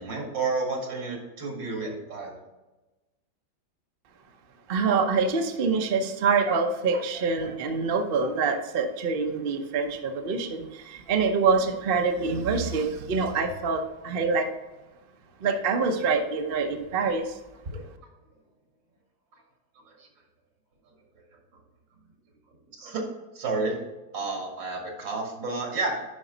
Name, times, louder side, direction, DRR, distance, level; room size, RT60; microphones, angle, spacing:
voice 1, 0.0-2.4 17.7-17.9 19.9-20.1 20.9-21.0 22.8-23.0 23.3-23.8 24.1-26.0, right 3 dB, 80° right, 1 dB, 2.7 m, -31 dB
voice 2, 4.7-14.5 15.4-17.4 17.7-17.8, right 4 dB, 50° right, 5 dB, 0.7 m, -25 dB
10.0 x 5.2 x 3.9 m, 1.1 s
omnidirectional pair, 2.0 m